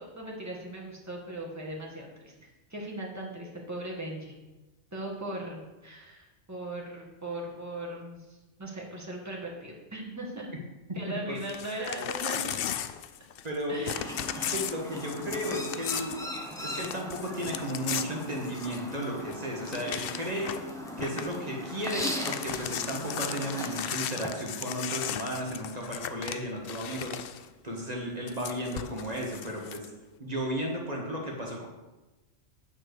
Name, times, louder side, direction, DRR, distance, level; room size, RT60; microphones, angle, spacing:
voice 1, 0.0-4.3 4.9-10.5 10.9-12.6 13.7-14.3, right 1 dB, 15° right, -2 dB, 1.8 m, -39 dB
Crumpling crinkling / Tearing, 11.4-13.6 13.8-18.9 19.3-19.4 19.6-20.7 21.0-21.3 21.7-27.5 28.3-29.9, left 9 dB, 60° left, 0.7 m, -36 dB
voice 2, 13.4-13.8 14.4-16.2 16.6-20.6 21.0-29.9 30.2-31.6, equal, 35° right, -2 dB, 1.7 m, -34 dB
Chirp tweet, 13.9-24.3, left 1 dB, 5° left, 1.0 m, -39 dB
9.3 x 4.4 x 6.7 m, 1.1 s
omnidirectional pair, 1.2 m